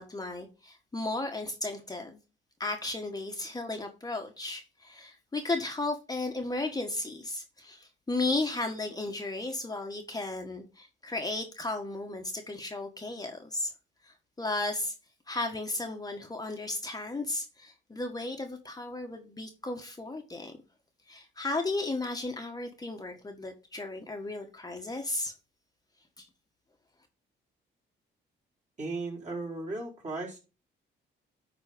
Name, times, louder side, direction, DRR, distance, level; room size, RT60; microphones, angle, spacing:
voice 1, 0.0-2.2 2.6-13.7 14.0-14.9 15.3-20.5 21.1-25.3 26.2-26.3, left 2 dB, 20° left, 1.4 m, -34 dB
voice 2, 28.8-30.4, right 3 dB, 35° right, 4.4 m, -36 dB
10.5 x 4.1 x 5.1 m
cardioid pair, 90°, 20 cm